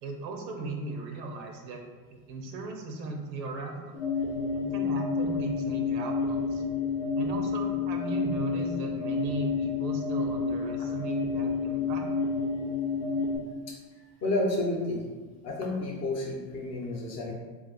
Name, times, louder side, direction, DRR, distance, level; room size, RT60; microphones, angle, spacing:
voice 1, 0.0-1.8 2.3-4.0 4.5-6.6 7.1-12.0 13.1-13.2, right 3 dB, 80° right, 3 dB, 0.7 m, -37 dB
sound 1, 3.9-13.4, left 4 dB, 80° left, 0.9 m, -29 dB
voice 2, 14.2-15.0 15.4-17.3, left 2 dB, 30° left, -1 dB, 0.8 m, -30 dB
2.5 x 2.3 x 4.0 m, 1.4 s
hypercardioid pair, 90°, 49 cm